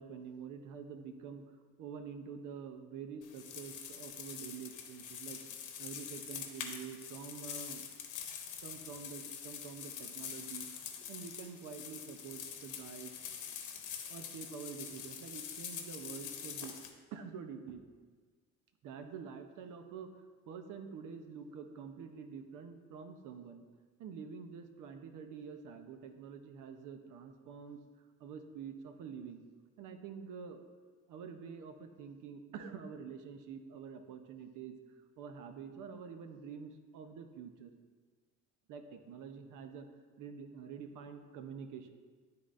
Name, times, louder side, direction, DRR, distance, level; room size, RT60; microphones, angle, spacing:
voice 1, 0.0-1.5 1.8-5.4 5.8-7.8 8.6-10.7 11.1-13.2 14.1-16.8 17.1-17.9 18.8-20.2 20.5-23.6 24.0-27.8 28.2-29.4 29.8-30.7 31.1-34.8 35.2-37.7 38.7-39.9 40.2-41.9, right 6 dB, 85° right, 7 dB, 0.7 m, -47 dB
sound 1, 3.2-16.9, left 7 dB, 80° left, 0.9 m, -45 dB
11.5 x 3.9 x 2.5 m, 1.5 s
cardioid pair, 90°, 30 cm